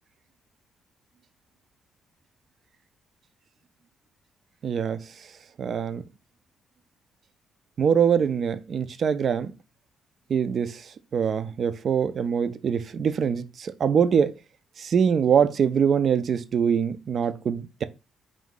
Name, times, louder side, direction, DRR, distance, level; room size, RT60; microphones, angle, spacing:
voice 1, 4.6-5.3 5.6-6.0 7.8-9.5 10.3-14.4 14.8-17.8, right 7 dB, 55° right, 0.4 m, -24 dB
3.7 x 2.7 x 3.7 m
cardioid pair, 90°, 0 cm